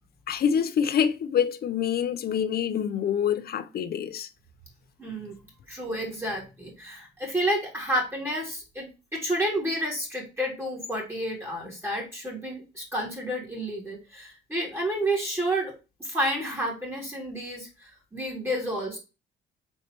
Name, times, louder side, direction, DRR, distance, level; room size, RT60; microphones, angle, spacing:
voice 1, 0.3-4.3, left 8 dB, 50° left, 0.5 m, -26 dB
voice 2, 5.0-5.4 5.7-8.9 9.1-15.7 16.0-19.0, right 1 dB, 10° right, 2.1 m, -30 dB
4.2 x 3.2 x 2.8 m
cardioid pair, 90°, 20 cm